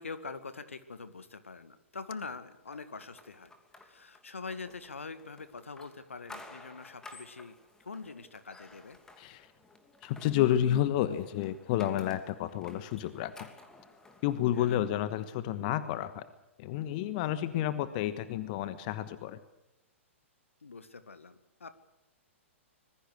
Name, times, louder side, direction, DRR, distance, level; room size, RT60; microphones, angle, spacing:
voice 1, 0.0-3.5 3.8-9.0 14.6-14.8 20.6-21.7, left 4 dB, 75° left, 12 dB, 2.0 m, -44 dB
sound 1, 2.7-14.9, left 2 dB, 10° left, 2.8 m, -54 dB
voice 2, 9.2-9.5 10.0-13.5 14.2-16.2 16.6-19.4, left 12 dB, 40° left, 13 dB, 1.3 m, -30 dB
25.5 x 21.0 x 6.5 m, 0.91 s
figure-of-eight pair, 110°, 7 cm